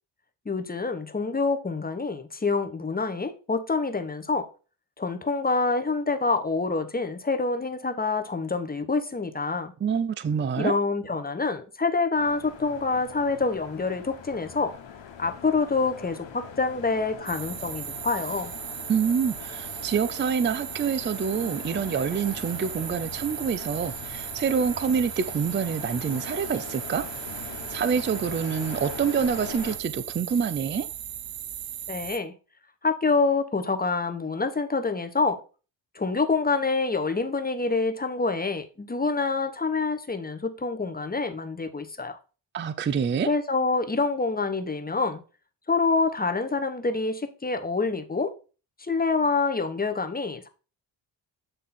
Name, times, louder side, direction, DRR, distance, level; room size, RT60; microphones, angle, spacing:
voice 1, 0.4-4.5 5.0-9.7 10.6-14.7 15.2-18.5 31.9-32.3 32.8-35.4 35.9-42.2 43.2-45.2 45.7-48.3 48.8-50.5, left 4 dB, 20° left, 1.0 m, -26 dB
voice 2, 9.8-10.7 18.9-27.1 27.7-30.9 42.5-43.3, right 6 dB, 25° right, 0.4 m, -26 dB
sound 1, 12.2-29.8, left 7 dB, 70° left, 1.5 m, -42 dB
sound 2, 17.3-32.2, right 11 dB, 70° right, 0.9 m, -37 dB
8.7 x 3.6 x 4.3 m
cardioid pair, 70°, 46 cm